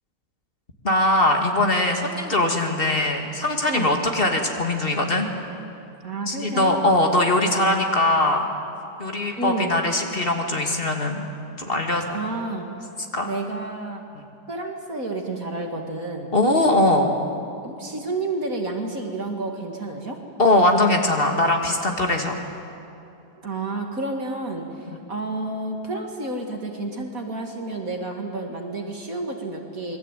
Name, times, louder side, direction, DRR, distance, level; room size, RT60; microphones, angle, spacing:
voice 1, 0.8-5.3 6.3-8.5 9.0-11.3 11.6-12.2 13.1-13.3 16.3-17.1 20.4-22.4 24.9-25.0, left 1 dB, 30° left, 3 dB, 2.6 m, -21 dB
voice 2, 3.7-4.0 6.0-6.8 9.4-9.7 12.1-12.7 13.2-14.0 14.5-16.3 17.6-20.2 23.4-24.7 25.1-30.0, right 2 dB, 55° right, 3 dB, 2.7 m, -30 dB
27.0 x 21.5 x 9.2 m, 2.8 s
omnidirectional pair, 1.8 m